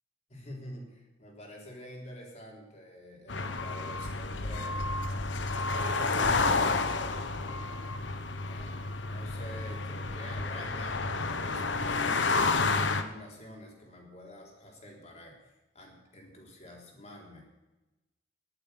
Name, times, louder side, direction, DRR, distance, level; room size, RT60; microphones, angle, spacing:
voice 1, 0.3-4.9 5.5-7.6 8.5-17.4, equal, 40° left, 0 dB, 3.7 m, -47 dB
sound 1, 3.3-13.0, left 3 dB, 80° left, 1.1 m, -30 dB
11.0 x 9.9 x 8.2 m, 1.1 s
head